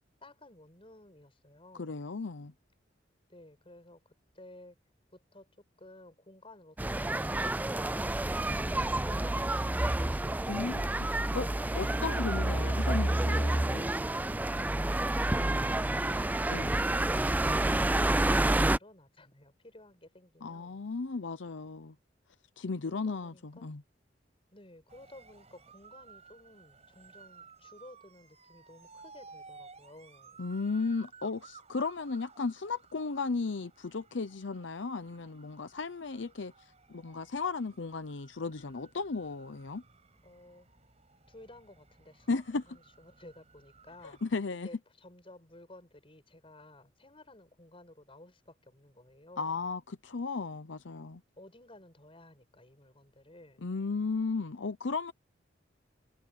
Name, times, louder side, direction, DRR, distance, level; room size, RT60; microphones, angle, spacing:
voice 1, 0.2-2.1 3.3-4.8 5.1-5.5 5.8-11.7 14.9-20.8 22.8-23.8 24.5-30.4 40.2-40.7 41.3-44.2 44.6-49.6 51.4-53.7, left 1 dB, 30° left, 6.6 m, -55 dB
voice 2, 1.8-2.5 10.5-11.5 11.7-13.9 16.5-16.8 20.4-21.9 22.6-23.8 30.4-36.5 36.9-39.8 42.3-42.6 44.2-44.7 49.4-51.2 53.6-55.1, left 4 dB, 80° left, 0.7 m, -35 dB
sound 1, 6.8-18.8, right 1 dB, 10° right, 0.4 m, -29 dB
sound 2, 24.9-44.4, right 5 dB, 35° right, 6.0 m, -57 dB
head